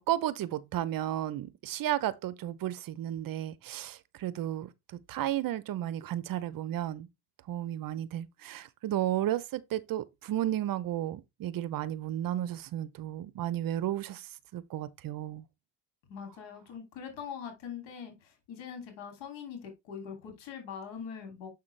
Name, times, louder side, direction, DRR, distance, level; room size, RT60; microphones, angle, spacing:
voice 1, 0.0-4.7 5.1-7.1 7.5-14.3 14.5-15.4, right 12 dB, 50° right, 0.6 m, -33 dB
voice 2, 16.1-21.5, left 7 dB, 90° left, 2.9 m, -42 dB
7.2 x 5.7 x 3.2 m
cardioid pair, 120°, 44 cm